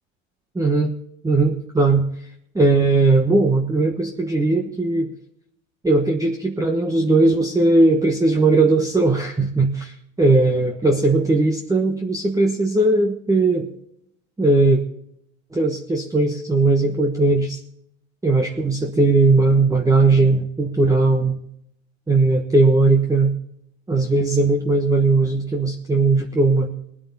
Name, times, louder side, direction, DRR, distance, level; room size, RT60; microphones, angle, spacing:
voice 1, 0.5-1.0 1.2-2.1 2.5-5.1 5.8-9.7 10.2-13.7 14.4-14.8 15.5-17.6 18.2-21.4 22.1-23.3 23.9-26.7, right 3 dB, 10° right, 3 dB, 1.3 m, -18 dB
20.5 x 8.8 x 4.1 m, 0.72 s
supercardioid pair, 110°, 40 cm